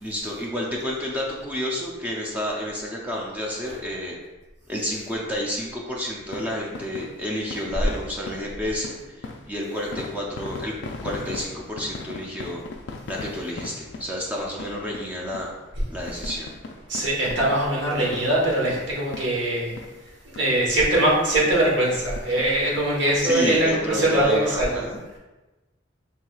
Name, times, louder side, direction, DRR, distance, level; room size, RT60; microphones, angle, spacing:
voice 1, 0.0-4.1 4.7-10.7 11.0-12.6 13.1-15.5 15.9-16.5 23.2-25.0, left 1 dB, 10° right, -3 dB, 0.4 m, -30 dB
sound 1, 6.2-20.1 20.4-20.5 20.9-21.1 21.4-21.6 21.9-22.9 23.3-23.4 23.6-23.7, left 3 dB, 60° left, 0.3 m, -39 dB
voice 2, 16.9-19.7 20.3-24.8, right 1 dB, 65° right, -4 dB, 1.2 m, -22 dB
4.5 x 3.3 x 2.3 m, 1.1 s
head